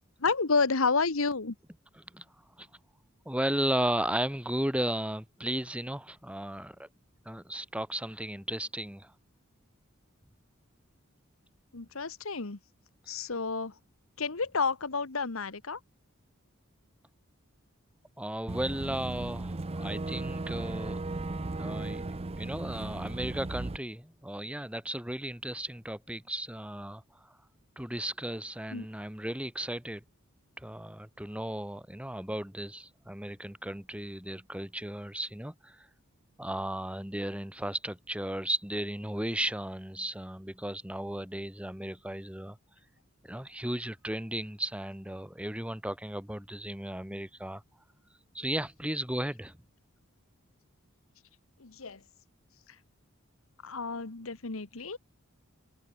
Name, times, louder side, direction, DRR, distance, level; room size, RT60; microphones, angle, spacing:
voice 1, 0.2-1.5 11.7-12.6 13.1-13.7 14.2-15.8 28.7-28.9 51.6-52.0 53.6-55.0, left 4 dB, 75° left, 1.4 m, -30 dB
voice 2, 3.2-6.9 7.2-9.1 13.1-13.2 18.2-21.0 21.6-22.0 22.4-27.3 27.8-30.0 30.6-35.9 36.4-42.6 43.2-47.6 48.3-49.6, right 1 dB, 5° right, 3.2 m, -35 dB
Boat Water vehicle / Engine, 18.5-23.8, right 2 dB, 30° right, 0.7 m, -36 dB
head